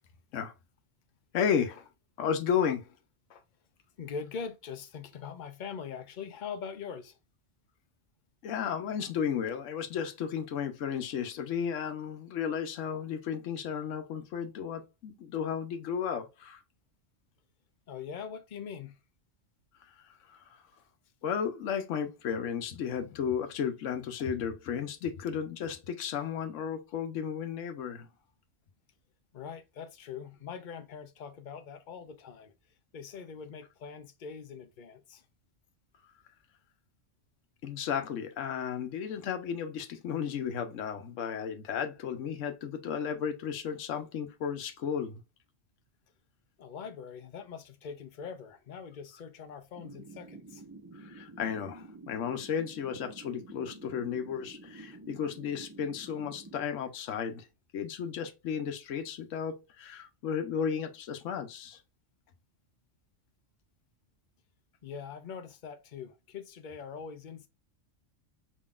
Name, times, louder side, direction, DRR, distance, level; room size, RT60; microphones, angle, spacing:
voice 1, 1.3-1.9 2.2-2.9 8.4-16.6 21.2-28.1 37.6-45.2 51.0-57.5 57.7-61.8, left 7 dB, 80° left, 1.1 m, -33 dB
voice 2, 4.0-7.2 17.9-19.0 29.3-32.5 32.9-35.2 46.6-50.6 64.8-67.5, left 6 dB, 45° left, 0.7 m, -42 dB
sound 1, 49.7-56.6, right 3 dB, 20° right, 0.7 m, -49 dB
5.1 x 3.7 x 2.4 m
omnidirectional pair, 1.3 m